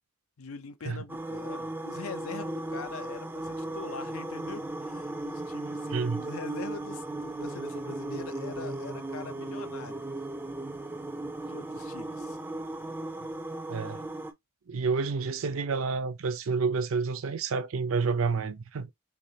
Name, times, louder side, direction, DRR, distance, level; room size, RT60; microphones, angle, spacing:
voice 1, 0.4-10.1 11.4-12.4, left 5 dB, 70° left, 0.5 m, -43 dB
sound 1, 1.1-14.3, right 2 dB, 10° right, 0.4 m, -36 dB
voice 2, 5.9-6.3 13.7-14.1 14.7-18.9, right 4 dB, 65° right, 0.5 m, -29 dB
3.3 x 3.3 x 2.7 m
head